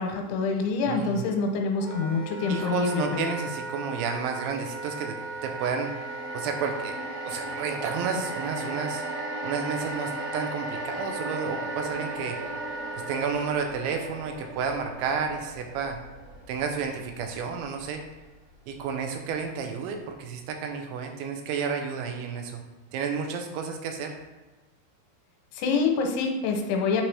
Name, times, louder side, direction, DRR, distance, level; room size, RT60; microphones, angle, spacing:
voice 1, 0.0-3.3 25.5-27.0, left 4 dB, 85° left, 3 dB, 3.1 m, -26 dB
voice 2, 0.9-1.2 2.5-5.2 5.4-5.9 6.3-7.0 7.2-9.0 9.4-12.4 12.9-16.0 16.5-18.0 18.7-22.6 22.9-24.2, right 5 dB, 85° right, 4 dB, 3.0 m, -31 dB
Wind instrument woodwind instrument, 1.8-13.6, right 2 dB, 50° right, 1.0 m, -37 dB
sound 1, 4.6-18.9 19.3-19.4, right 2 dB, 65° right, 2.6 m, -39 dB
8.7 x 3.3 x 4.8 m, 1.2 s
omnidirectional pair, 5.4 m